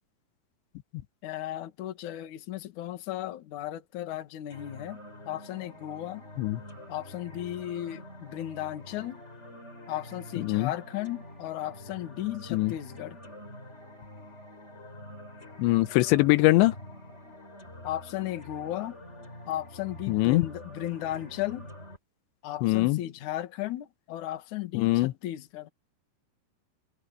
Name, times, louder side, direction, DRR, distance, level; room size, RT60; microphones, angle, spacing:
voice 1, 1.2-5.0 5.3-6.2 6.9-9.2 9.9-13.2 17.8-19.0 19.5-21.7 22.4-25.7, left 13 dB, 55° left, 2.6 m, -35 dB
sound 1, 4.5-22.0, left 1 dB, 15° left, 5.6 m, -46 dB
voice 2, 10.4-10.7 12.5-12.7 15.6-16.7 20.1-20.5 22.6-23.0 24.7-25.1, left 19 dB, 85° left, 3.1 m, -22 dB
omnidirectional pair, 5.0 m